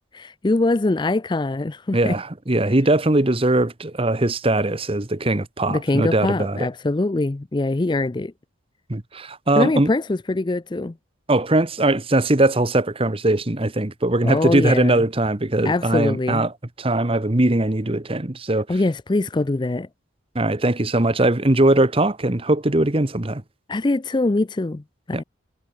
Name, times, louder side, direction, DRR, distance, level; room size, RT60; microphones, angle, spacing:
voice 1, 0.1-2.2 5.7-8.3 9.6-10.9 14.2-15.0 15.6-16.5 18.7-19.9 23.7-24.8 25.1-25.2, left 2 dB, 20° left, 0.4 m, -23 dB
voice 2, 1.9-6.7 8.9-9.9 11.3-16.5 16.8-18.7 20.3-23.4 25.1-25.2, right 2 dB, 25° right, 1.1 m, -20 dB
head